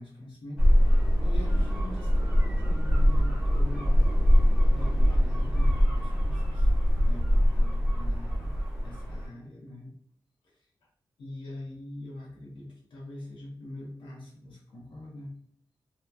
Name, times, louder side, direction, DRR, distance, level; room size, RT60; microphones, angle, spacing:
voice 1, 0.0-6.7 7.0-8.5 8.8-9.9 10.4-10.7 11.2-15.3, left 1 dB, 85° left, -4 dB, 0.7 m, -43 dB
sound 1, 0.6-9.3, equal, 10° right, 0.9 m, -23 dB
2.9 x 2.1 x 2.3 m, 0.65 s
wide cardioid pair, 165°, 8 cm